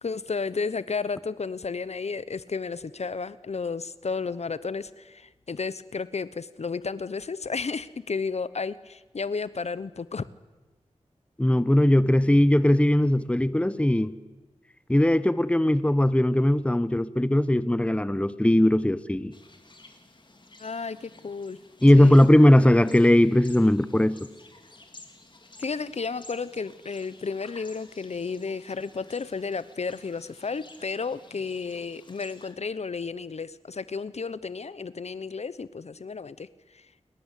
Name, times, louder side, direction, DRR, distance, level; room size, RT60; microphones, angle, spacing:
voice 1, 0.0-10.3 20.6-21.6 22.0-22.2 25.6-36.9, left 4 dB, 65° left, 1.0 m, -32 dB
voice 2, 11.4-14.1 14.9-19.3 21.8-24.2, left 1 dB, 10° left, 1.1 m, -19 dB
sound 1, 19.3-32.5, left 2 dB, 40° left, 3.9 m, -52 dB
30.0 x 23.0 x 8.4 m
wide cardioid pair, 60°, 12 cm